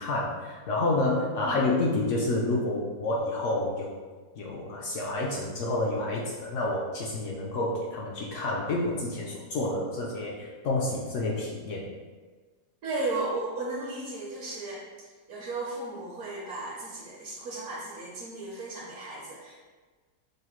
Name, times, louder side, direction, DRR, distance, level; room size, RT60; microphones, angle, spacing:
voice 1, 0.0-3.9 4.4-11.9, left 2 dB, 70° left, -2 dB, 0.7 m, -29 dB
voice 2, 12.8-19.6, right 2 dB, 65° right, -5 dB, 1.0 m, -35 dB
5.4 x 2.0 x 3.0 m, 1.4 s
omnidirectional pair, 1.7 m